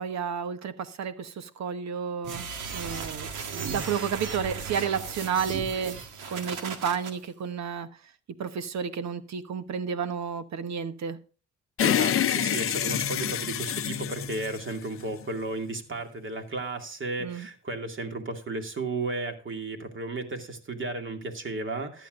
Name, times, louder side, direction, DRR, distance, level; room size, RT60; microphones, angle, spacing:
voice 1, 0.0-2.5 2.7-7.9 8.4-11.2 17.2-17.5, right 7 dB, 65° right, 1.1 m, -31 dB
sound 1, 2.2-7.1, right 6 dB, 90° right, 1.7 m, -36 dB
sound 2, 11.8-15.3, left 10 dB, 45° left, 0.6 m, -27 dB
voice 2, 11.8-22.1, right 2 dB, 40° right, 2.4 m, -34 dB
14.5 x 11.5 x 2.5 m
cardioid pair, 90°, 30 cm